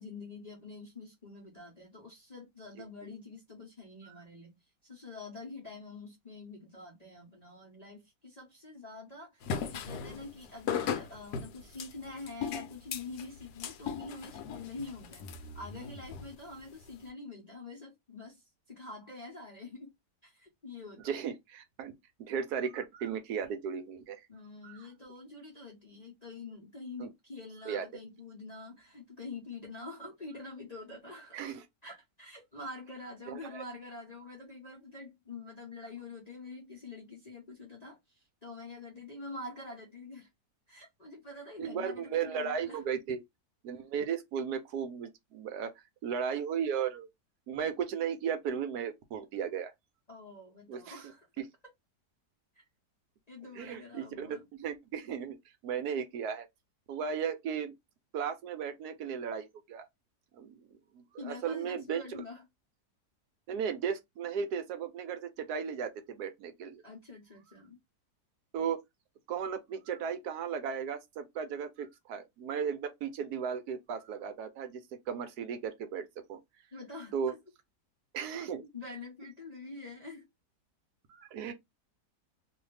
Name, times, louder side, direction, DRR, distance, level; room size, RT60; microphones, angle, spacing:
voice 1, 0.0-4.6 4.8-19.9 20.2-21.3 24.3-31.4 31.8-40.3 40.7-42.8 50.1-51.4 52.6-52.7 53.3-54.5 61.2-62.4 66.8-67.8 76.7-77.4 78.6-80.3, left 3 dB, 35° left, 0.6 m, -46 dB
sound 1, 9.4-17.1, left 7 dB, 75° left, 1.1 m, -38 dB
voice 2, 21.0-21.9 22.2-24.2 24.6-24.9 27.0-27.1 27.7-27.8 31.3-31.6 33.3-33.6 41.6-43.2 43.6-45.7 46.0-47.1 47.5-49.7 50.7-51.0 51.4-51.5 53.6-55.4 55.6-56.5 56.9-57.7 58.1-59.9 60.3-60.7 60.9-62.2 63.5-66.8 68.5-68.8 69.3-74.8 75.1-76.4 77.1-77.3 78.1-78.6 81.1-81.5, right 7 dB, 70° right, 1.1 m, -35 dB
2.7 x 2.5 x 3.2 m
omnidirectional pair, 1.8 m